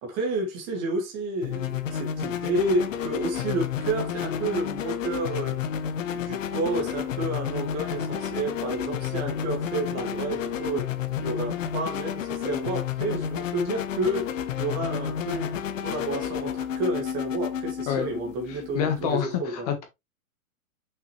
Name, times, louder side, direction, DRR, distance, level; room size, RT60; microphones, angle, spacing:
voice 1, 0.0-5.6 6.1-10.9 11.2-15.5 15.8-19.7, right 2 dB, 20° right, 2.2 m, -30 dB
sound 1, 1.4-19.2, left 8 dB, 60° left, 1.1 m, -31 dB
voice 2, 18.5-19.8, left 8 dB, 25° left, 1.4 m, -28 dB
6.1 x 5.7 x 3.2 m
hypercardioid pair, 180°, 43 cm